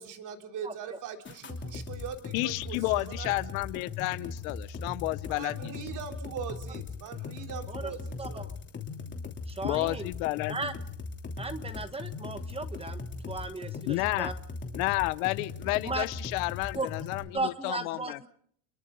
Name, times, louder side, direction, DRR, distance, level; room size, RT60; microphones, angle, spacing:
voice 1, 0.0-3.3 5.3-8.6, right 7 dB, 45° right, 4 dB, 3.5 m, -41 dB
sound 1, 1.2-17.2, left 4 dB, 25° left, 3.1 m, -39 dB
voice 2, 2.3-5.7 9.6-10.6 13.9-14.3 14.7-18.3, left 21 dB, 75° left, 16 dB, 0.9 m, -31 dB
voice 3, 9.5-10.1 10.5-10.7 11.4-13.0 13.3-14.3 15.8-16.0 16.7-16.9 17.3-18.3, right 3 dB, 15° right, 10 dB, 1.4 m, -35 dB
29.5 x 23.0 x 3.9 m, 0.63 s
supercardioid pair, 115°, 41 cm